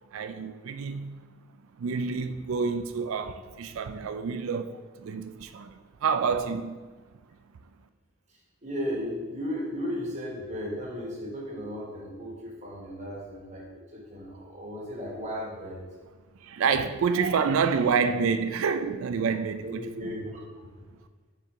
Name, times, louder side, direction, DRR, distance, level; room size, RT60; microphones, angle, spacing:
voice 1, 0.1-1.2 1.8-6.8 16.4-19.8, right 5 dB, 80° right, 0.4 m, -28 dB
voice 2, 8.3-15.8 19.6-20.4, equal, 35° right, 1.4 m, -35 dB
6.4 x 4.6 x 3.7 m
head